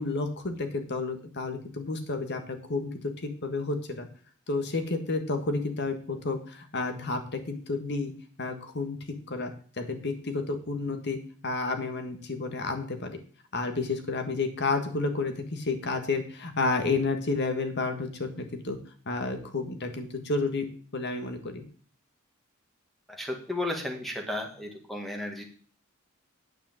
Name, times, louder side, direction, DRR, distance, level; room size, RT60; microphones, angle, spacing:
voice 1, 0.0-2.9 3.2-4.1 4.5-8.1 8.4-9.0 9.3-9.5 9.8-11.2 11.4-13.2 13.5-18.8 19.0-20.7 20.9-21.6, left 3 dB, 55° left, 7 dB, 1.7 m, -31 dB
voice 2, 23.2-25.4, left 1 dB, ahead, 2 dB, 1.9 m, -33 dB
9.3 x 5.0 x 7.8 m, 0.43 s
head